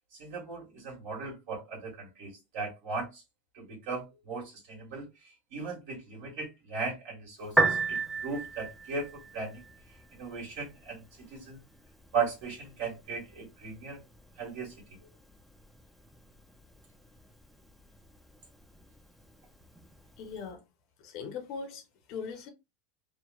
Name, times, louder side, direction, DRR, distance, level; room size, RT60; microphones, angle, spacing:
voice 1, 0.1-3.2 3.5-9.6 10.1-11.0 11.3-11.6 12.1-14.0 14.4-14.7, right 4 dB, 70° right, 1.5 m, -37 dB
Piano, 7.4-20.4, right 3 dB, ahead, 0.4 m, -37 dB
voice 2, 20.2-20.6 21.0-21.8 22.1-22.5, left 5 dB, 50° left, 0.6 m, -39 dB
2.9 x 2.0 x 2.2 m
supercardioid pair, 150°, 0 cm